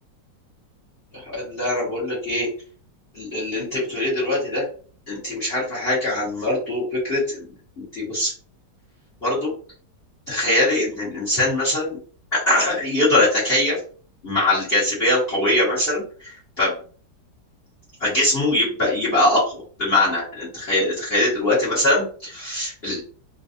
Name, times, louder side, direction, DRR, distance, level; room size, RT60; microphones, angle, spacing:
voice 1, 1.2-2.5 3.1-4.7 5.1-7.5 7.8-8.3 9.2-9.5 10.3-12.0 12.3-13.8 14.2-16.3 16.6-16.7 18.0-23.0, left 1 dB, 35° left, -6 dB, 1.8 m, -22 dB
3.8 x 2.6 x 2.7 m, 0.41 s
omnidirectional pair, 2.0 m